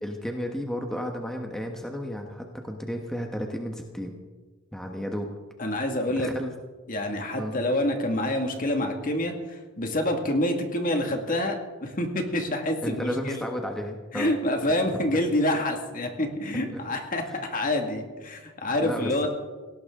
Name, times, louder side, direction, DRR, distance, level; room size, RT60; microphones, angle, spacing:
voice 1, 0.0-4.2 4.7-5.3 6.1-6.5 7.4-7.5 12.8-14.3 16.7-16.8 17.3-17.4 18.8-19.3, equal, ahead, 2 dB, 1.3 m, -33 dB
voice 2, 5.6-6.3 6.9-13.4 14.1-19.3, left 1 dB, 40° left, 4 dB, 2.0 m, -27 dB
18.5 x 17.5 x 3.8 m, 1.3 s
head